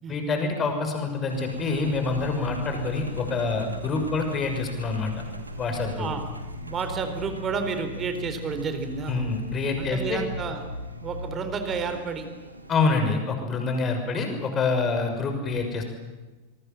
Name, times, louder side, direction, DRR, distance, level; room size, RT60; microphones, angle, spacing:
voice 1, 0.1-5.1 5.6-6.1 9.1-10.2 12.7-15.8, left 4 dB, 25° left, 5 dB, 6.3 m, -26 dB
Engine, 1.3-12.9, left 1 dB, 85° right, 2.6 m, -38 dB
voice 2, 6.6-9.3 9.8-10.6 11.0-12.3, right 5 dB, 25° right, 8 dB, 4.0 m, -31 dB
26.5 x 23.0 x 7.6 m, 1.2 s
figure-of-eight pair, 90°, 0 cm